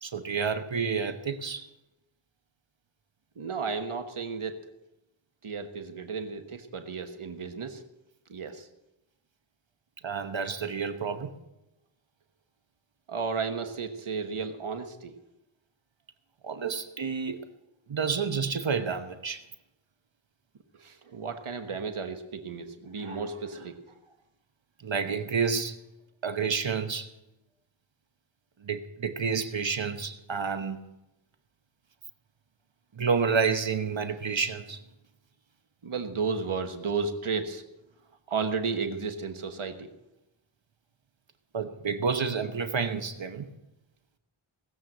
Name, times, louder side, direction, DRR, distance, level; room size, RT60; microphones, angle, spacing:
voice 1, 0.0-1.7 10.0-11.3 16.4-17.4 17.9-19.4 24.8-25.8 26.2-27.1 28.6-30.8 33.0-34.8 41.5-43.5, right 5 dB, 65° right, 8 dB, 1.0 m, -29 dB
voice 2, 3.4-4.6 5.4-7.8 8.3-8.7 13.1-15.1 20.8-23.8 35.8-37.6 38.3-39.9, right 5 dB, 85° right, 7 dB, 1.4 m, -33 dB
18.5 x 7.7 x 7.6 m, 0.95 s
wide cardioid pair, 60°, 49 cm